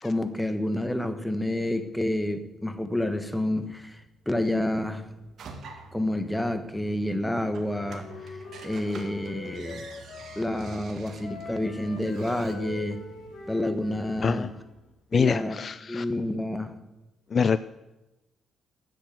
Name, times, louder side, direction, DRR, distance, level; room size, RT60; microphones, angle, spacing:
voice 1, 0.0-5.1 5.9-8.4 8.6-9.9 10.4-13.0 13.5-14.5 15.1-15.6 15.9-16.7, left 1 dB, 5° left, 9 dB, 1.4 m, -29 dB
sound 1, 2.3-15.4, right 2 dB, 85° right, 2.9 m, -52 dB
sound 2, 5.4-12.5, right 4 dB, 60° right, 2.1 m, -48 dB
Wind instrument woodwind instrument, 7.7-10.7 11.2-14.7, left 3 dB, 65° left, 3.2 m, -43 dB
voice 2, 14.2-14.5 15.1-16.1 17.3-17.6, left 6 dB, 45° left, 15 dB, 0.4 m, -25 dB
11.0 x 7.7 x 9.3 m, 1.0 s
cardioid pair, 90°, 0 cm